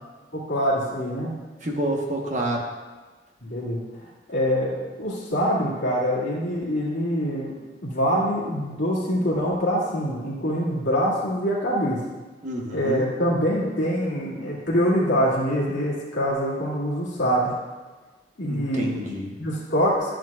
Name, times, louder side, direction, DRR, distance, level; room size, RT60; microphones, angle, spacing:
voice 1, 0.3-1.3 3.4-3.8 4.3-7.6 7.8-12.0 12.7-17.5 18.4-19.1 19.4-20.2, equal, 85° left, -7 dB, 2.2 m, -24 dB
voice 2, 1.6-2.7 12.4-13.0 18.4-19.3, right 1 dB, 40° right, 0 dB, 1.1 m, -28 dB
11.0 x 7.7 x 2.4 m, 1.3 s
head